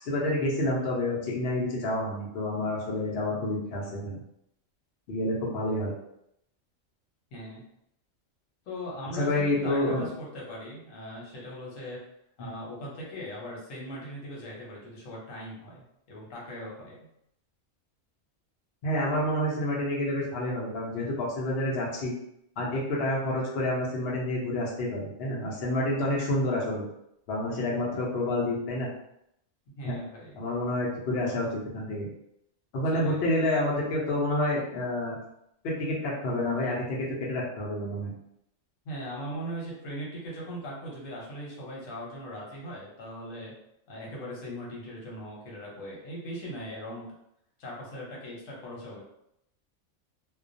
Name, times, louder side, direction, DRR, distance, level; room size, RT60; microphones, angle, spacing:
voice 1, 0.0-4.2 5.1-5.9 9.1-10.1 12.4-12.5 18.8-22.1 22.6-26.8 27.3-28.9 29.8-30.0 30.4-31.5 31.7-32.1 32.7-35.2 35.6-37.0 37.3-38.1, left 1 dB, 60° left, -4 dB, 0.8 m, -28 dB
voice 2, 7.3-7.6 8.7-12.0 12.4-17.1 29.8-30.4 32.9-33.3 38.8-43.5 43.9-47.1 47.6-49.0, equal, 80° left, -4 dB, 1.1 m, -39 dB
2.3 x 2.2 x 2.5 m, 0.78 s
omnidirectional pair, 1.3 m